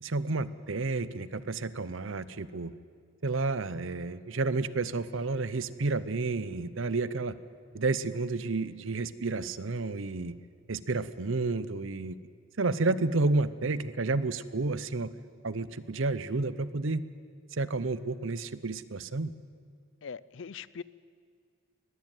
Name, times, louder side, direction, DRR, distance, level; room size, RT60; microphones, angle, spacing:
voice 1, 0.0-2.7 3.2-7.4 7.7-10.4 10.7-12.1 12.6-15.1 15.4-17.1 17.5-19.3, right 3 dB, 65° right, 15 dB, 0.7 m, -31 dB
voice 2, 20.0-20.8, left 6 dB, 60° left, 19 dB, 0.5 m, -41 dB
21.0 x 15.5 x 9.1 m, 2.2 s
head